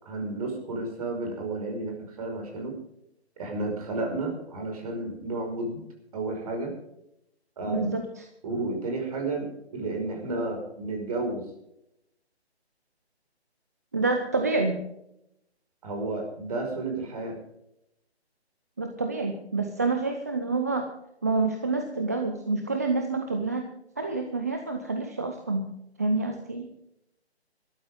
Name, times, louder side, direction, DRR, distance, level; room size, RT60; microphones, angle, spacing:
voice 1, 0.0-2.7 3.4-5.8 6.1-6.7 7.6-7.9 8.4-11.4 15.8-17.3, right 2 dB, 35° right, 2 dB, 5.4 m, -32 dB
voice 2, 7.7-8.3 13.9-14.8 18.8-20.9 21.2-23.7 24.0-25.7 26.0-26.7, right 3 dB, 15° right, 5 dB, 0.6 m, -27 dB
19.5 x 13.5 x 3.7 m, 0.80 s
hypercardioid pair, 160°, 33 cm